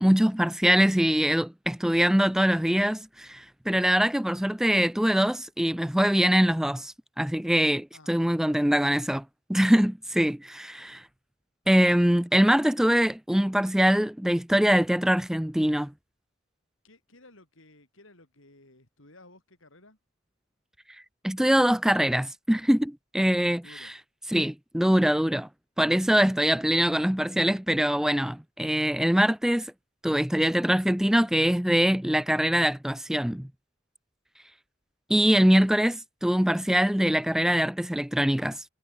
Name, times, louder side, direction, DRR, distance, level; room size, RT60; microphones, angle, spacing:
voice 1, 0.0-9.2 9.5-11.1 11.7-15.9 21.2-23.6 24.3-25.5 25.8-29.7 30.0-33.5 35.1-38.6, equal, ahead, 0.3 m, -23 dB
voice 2, 7.9-8.8 16.8-20.0 23.2-23.9 35.1-35.4, left 2 dB, 75° left, 7.1 m, -55 dB
head